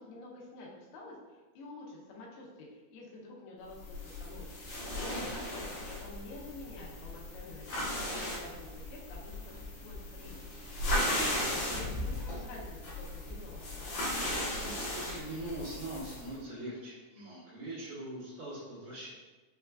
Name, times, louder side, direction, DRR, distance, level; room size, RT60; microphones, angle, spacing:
voice 1, 0.0-9.6 9.8-13.9, left 2 dB, 90° left, -3 dB, 2.8 m, -49 dB
sound 1, 3.8-16.3, left 1 dB, 70° left, 1.7 m, -36 dB
voice 2, 5.1-5.4 11.0-11.5 14.6-19.1, right 1 dB, 65° right, -10 dB, 2.1 m, -42 dB
6.3 x 2.3 x 2.3 m, 1.2 s
omnidirectional pair, 4.5 m